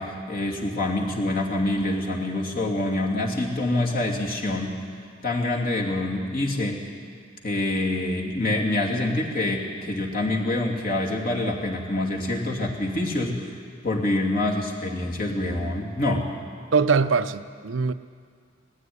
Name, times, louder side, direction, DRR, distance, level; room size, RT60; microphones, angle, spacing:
voice 1, 0.0-4.7 5.2-6.8 7.4-13.5 13.8-16.2, left 2 dB, 50° left, 2.8 m, -26 dB
voice 2, 16.7-17.9, right 5 dB, 75° right, 0.6 m, -22 dB
19.5 x 15.0 x 9.7 m
head